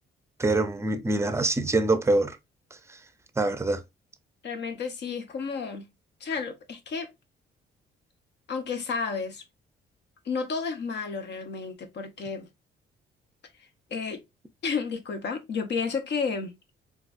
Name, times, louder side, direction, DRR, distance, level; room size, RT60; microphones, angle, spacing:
voice 1, 0.4-2.4 2.9-3.0 3.4-3.8, right 2 dB, 15° right, 0.5 m, -24 dB
voice 2, 4.4-5.9 6.2-7.1 8.5-9.4 10.2-12.5 13.9-14.2 14.6-16.5, left 5 dB, 60° left, 0.9 m, -31 dB
3.9 x 2.4 x 2.5 m
cardioid pair, 90°, 20 cm